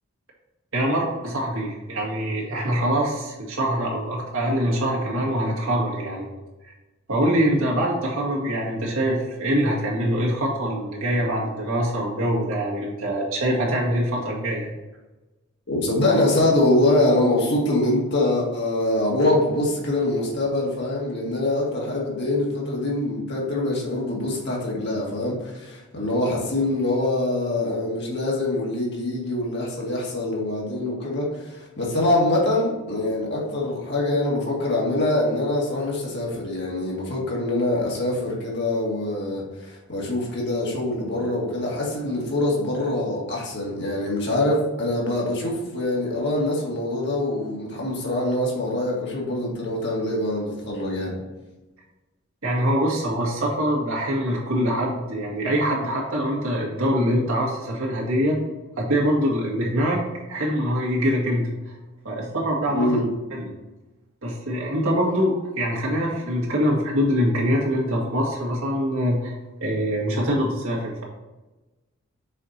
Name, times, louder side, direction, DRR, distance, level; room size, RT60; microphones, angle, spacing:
voice 1, 0.7-6.3 6.6-6.7 7.1-14.7 52.4-58.4 58.8-61.8 62.0-62.9 63.3-63.5 64.2-69.3 69.6-71.0, equal, 75° right, -4 dB, 2.1 m, -24 dB
voice 2, 15.7-51.2 62.7-63.0, left 1 dB, 55° left, -3 dB, 1.9 m, -24 dB
6.3 x 4.6 x 4.3 m, 1.1 s
head